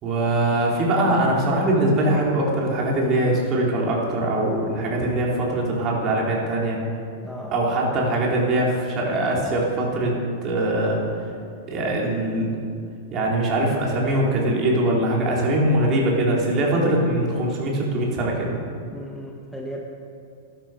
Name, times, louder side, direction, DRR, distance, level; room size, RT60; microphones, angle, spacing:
voice 1, 0.0-6.8 7.5-11.0 11.7-12.5 13.1-18.5, right 1 dB, 40° right, -3 dB, 3.9 m, -22 dB
voice 2, 7.2-7.5 7.8-7.9 18.9-19.9, equal, 5° left, -2 dB, 1.4 m, -36 dB
12.5 x 12.0 x 5.2 m, 2.3 s
hypercardioid pair, 105°, 0 cm